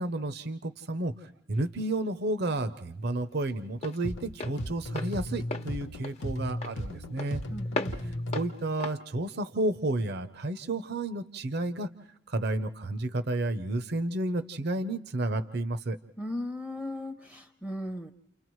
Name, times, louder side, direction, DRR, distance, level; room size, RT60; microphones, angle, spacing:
voice 1, 0.0-7.4 8.3-11.9 12.3-16.0, right 2 dB, 60° right, 11 dB, 0.7 m, -31 dB
Walk footsteps, 1.5-10.2, left 2 dB, 35° left, 0.9 m, -40 dB
sound 1, 4.0-8.6, left 1 dB, 80° left, 0.9 m, -36 dB
voice 2, 7.5-8.3 16.2-18.1, left 1 dB, 5° left, 6 dB, 0.7 m, -37 dB
29.5 x 29.5 x 3.1 m, 0.73 s
head